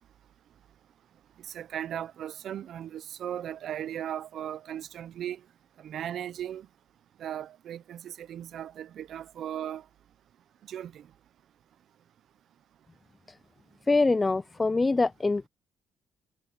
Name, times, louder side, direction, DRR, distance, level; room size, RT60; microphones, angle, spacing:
voice 1, 1.5-5.4 5.8-6.7 7.2-9.8 10.7-11.1, right 10 dB, 65° right, 1.0 m, -37 dB
voice 2, 13.9-15.5, left 3 dB, 25° left, 0.8 m, -24 dB
supercardioid pair, 65°, 0 cm